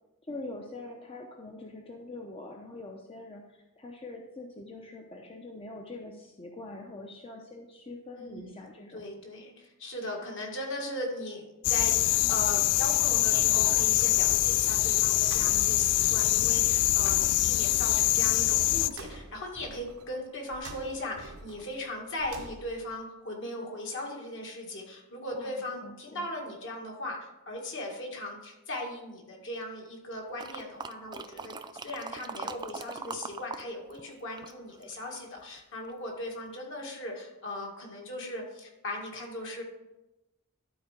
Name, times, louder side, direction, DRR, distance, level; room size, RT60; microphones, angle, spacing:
voice 1, 0.3-9.0 12.2-12.5 25.4-26.3, left 2 dB, 25° left, 1 dB, 0.7 m, -44 dB
voice 2, 8.2-8.5 8.9-39.6, left 1 dB, 60° left, -1 dB, 2.1 m, -38 dB
sound 1, 11.6-18.9, left 16 dB, 80° left, 0.3 m, -24 dB
sound 2, 12.7-22.9, right 3 dB, 75° right, 0.9 m, -48 dB
sound 3, 30.4-33.6 33.9-35.4 35.9-36.0, right 4 dB, 20° right, 0.3 m, -41 dB
12.0 x 4.6 x 5.1 m, 0.98 s
head